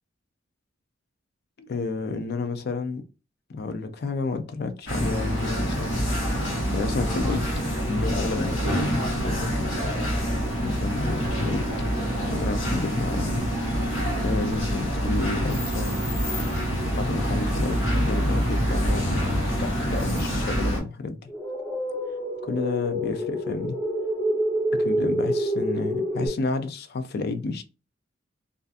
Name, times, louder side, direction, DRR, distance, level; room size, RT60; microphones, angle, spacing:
voice 1, 1.6-3.0 3.5-9.7 10.6-11.7 12.0-13.5 14.2-16.0 16.9-21.2 22.4-23.7 24.8-27.6, left 3 dB, 55° left, 0.4 m, -31 dB
sound 1, 4.9-20.8, equal, 80° left, 1.2 m, -26 dB
sound 2, 21.3-26.3, equal, ahead, 0.8 m, -27 dB
2.4 x 2.4 x 2.4 m
head